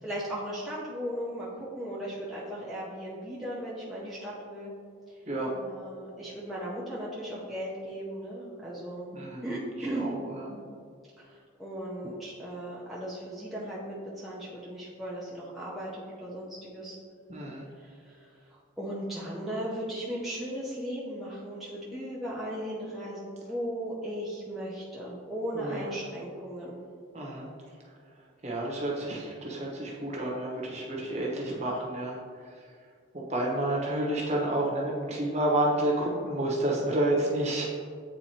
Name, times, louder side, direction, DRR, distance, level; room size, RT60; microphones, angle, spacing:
voice 1, 0.0-4.7 5.6-9.1 9.4-10.1 11.2-16.9 17.8-26.8, equal, ahead, -8 dB, 0.7 m, -37 dB
voice 2, 9.1-9.5 9.8-10.6 17.3-17.7 25.5-25.9 27.1-27.5 28.4-32.2 33.1-37.6, right 1 dB, 35° right, -3 dB, 1.0 m, -30 dB
8.8 x 4.0 x 2.8 m, 2.1 s
head